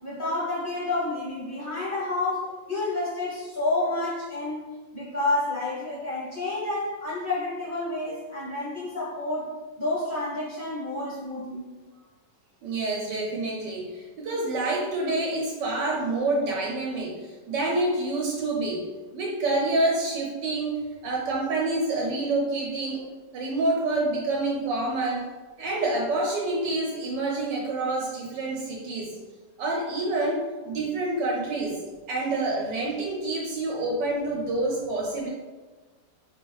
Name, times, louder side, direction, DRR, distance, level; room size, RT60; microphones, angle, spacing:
voice 1, 0.0-4.6 4.9-9.5 9.8-11.7, left 2 dB, 15° left, -10 dB, 0.7 m, -29 dB
voice 2, 12.6-18.9 19.1-23.1 23.3-25.3 25.6-29.1 29.6-31.8 32.1-35.3, right 2 dB, 75° right, -1 dB, 1.2 m, -27 dB
4.1 x 2.5 x 3.0 m, 1.3 s
omnidirectional pair, 2.0 m